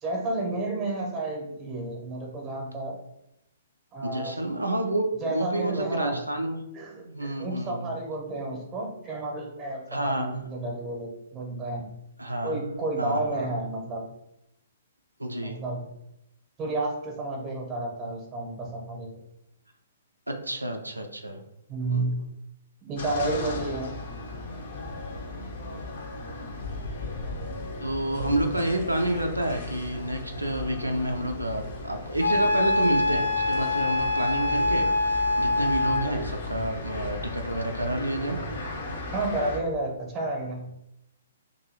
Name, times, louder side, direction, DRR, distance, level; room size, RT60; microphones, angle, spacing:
voice 1, 0.0-3.0 3.9-4.3 5.2-6.2 6.7-11.9 12.4-14.1 15.4-15.9 16.6-19.1 21.7-22.2 22.8-23.9 39.1-40.7, right 2 dB, 20° right, 1 dB, 0.8 m, -31 dB
voice 2, 4.0-6.6 7.0-8.0 9.9-10.5 12.2-13.5 15.2-15.6 20.3-21.4 21.9-22.1 27.8-38.4, right 1 dB, 85° right, 4 dB, 0.3 m, -29 dB
sound 1, 22.9-39.6, left 2 dB, 50° left, 0.7 m, -36 dB
Wind instrument woodwind instrument, 32.2-36.1, left 2 dB, 90° left, 0.8 m, -24 dB
2.7 x 2.6 x 2.7 m, 0.83 s
figure-of-eight pair, 120°, 0 cm